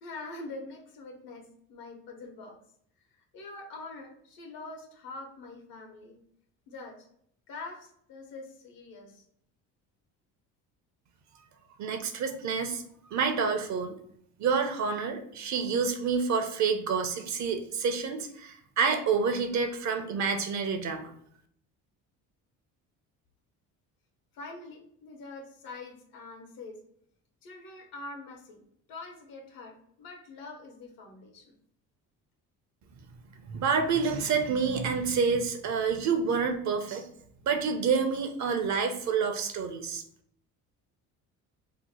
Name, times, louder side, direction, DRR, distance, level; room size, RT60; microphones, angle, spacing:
voice 1, 0.0-2.6 3.1-6.2 6.7-7.1 7.5-9.2 24.3-26.8 27.4-28.6 28.9-31.5, left 3 dB, 75° left, 3 dB, 1.0 m, -44 dB
voice 2, 11.8-12.8 13.1-14.0 14.4-21.1 33.4-37.1 37.4-40.0, right 5 dB, 55° right, 6 dB, 0.6 m, -28 dB
2.8 x 2.1 x 4.1 m, 0.67 s
supercardioid pair, 90°, 35 cm